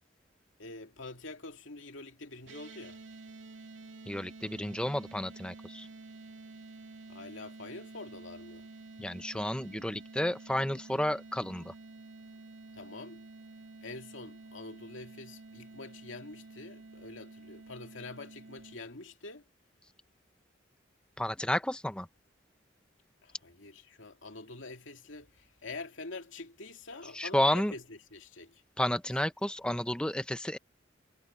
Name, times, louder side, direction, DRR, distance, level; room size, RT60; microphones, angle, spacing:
voice 1, 0.6-3.0 7.1-8.7 12.7-13.3 13.8-19.4 23.2-28.6, left 3 dB, 85° left, 2.4 m, -46 dB
sound 1, 2.4-18.8, right 3 dB, 80° right, 2.5 m, -50 dB
voice 2, 4.1-5.9 9.0-11.7 21.2-22.1 27.1-27.7 28.8-30.6, left 1 dB, 5° left, 0.6 m, -31 dB
head